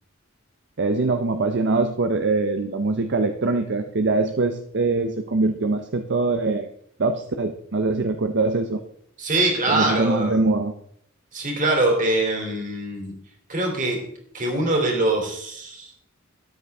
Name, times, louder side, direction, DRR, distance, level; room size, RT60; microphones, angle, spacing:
voice 1, 0.8-6.7 7.0-8.8 9.7-10.7, right 3 dB, 60° right, 7 dB, 0.7 m, -23 dB
voice 2, 9.2-10.4 11.3-13.1 13.5-14.0 14.3-15.9, right 2 dB, 40° right, 1 dB, 3.1 m, -23 dB
13.0 x 9.6 x 3.5 m, 0.69 s
head